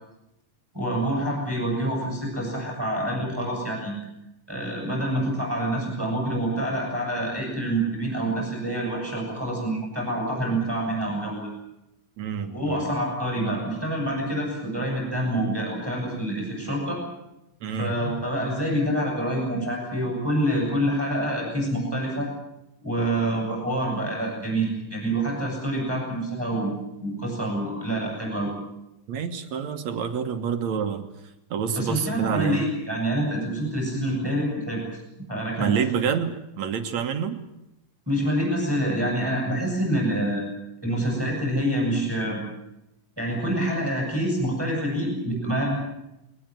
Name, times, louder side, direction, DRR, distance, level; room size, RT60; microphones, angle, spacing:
voice 1, 0.7-4.0 4.5-11.5 12.5-17.0 17.7-22.3 22.8-26.7 27.0-28.5 31.7-34.8 35.3-35.8 38.1-40.4 40.8-42.4 43.2-45.8, right 1 dB, 5° right, -1 dB, 7.5 m, -26 dB
voice 2, 12.2-12.9 17.6-18.1 29.1-31.1 31.5-32.6 35.6-37.4, right 7 dB, 60° right, 8 dB, 2.4 m, -28 dB
22.0 x 19.5 x 9.1 m, 0.89 s
omnidirectional pair, 4.0 m